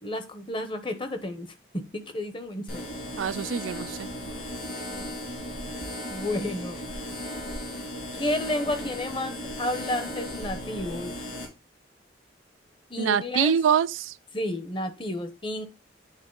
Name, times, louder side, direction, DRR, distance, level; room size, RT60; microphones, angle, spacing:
voice 1, 0.0-2.9 6.1-6.8 8.1-11.1 12.9-13.6 14.3-15.7, left 1 dB, 25° left, 0.8 m, -31 dB
sound 1, 2.7-11.5, left 1 dB, 60° left, 2.8 m, -36 dB
voice 2, 3.2-4.1 13.0-14.1, right 8 dB, 90° right, 0.3 m, -25 dB
9.0 x 3.8 x 3.8 m
head